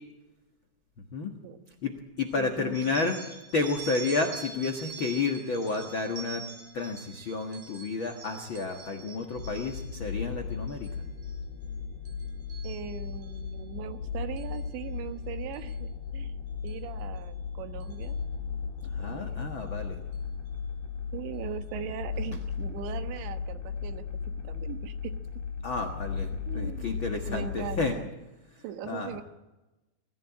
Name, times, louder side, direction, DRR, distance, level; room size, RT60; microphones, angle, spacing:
voice 1, 1.8-3.2 3.5-6.4 6.7-10.9 18.8-20.0 25.6-28.0 28.5-29.1, left 3 dB, 80° left, 4 dB, 1.1 m, -31 dB
voice 2, 2.4-3.1 12.6-16.3 16.6-18.2 19.0-19.5 21.1-24.1 24.4-25.1 26.5-26.9 27.3-28.1 28.6-29.2, right 9 dB, 90° right, 9 dB, 3.5 m, -40 dB
sound 1, 2.7-10.0 10.5-10.9 11.2-11.7 12.1-13.4 14.4-14.6 15.5-15.7 16.7-16.8 17.2-17.3 17.8-18.0, right 4 dB, 65° right, 4.7 m, -45 dB
sound 2, 9.4-27.9, left 5 dB, 65° left, 4.4 m, -36 dB
23.0 x 15.0 x 8.6 m, 1.1 s
omnidirectional pair, 5.0 m